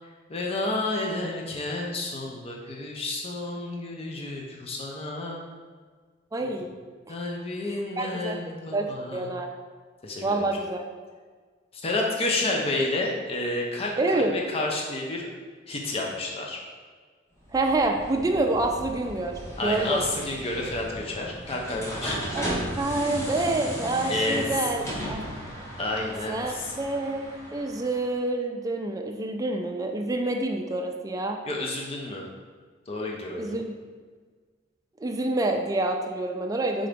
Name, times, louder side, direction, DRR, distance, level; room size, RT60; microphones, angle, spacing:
voice 1, 0.3-5.4 7.1-9.3 10.0-10.5 11.7-15.3 15.7-16.6 19.6-22.2 24.0-24.4 25.8-26.7 31.4-32.2 32.9-33.6, left 2 dB, 30° left, -1 dB, 0.5 m, -30 dB
voice 2, 6.3-6.8 8.0-8.4 8.7-8.9 9.1-9.5 10.2-10.8 14.0-14.4 17.5-20.0 22.3-22.4 22.8-24.8 25.1-25.2 26.3-27.3 27.5-31.4 33.4-33.7 35.0-36.9, right 2 dB, 20° right, 2 dB, 0.4 m, -27 dB
sound 1, 17.4-28.1, equal, 15° left, 0.9 m, -36 dB
3.8 x 3.8 x 3.4 m, 1.5 s
head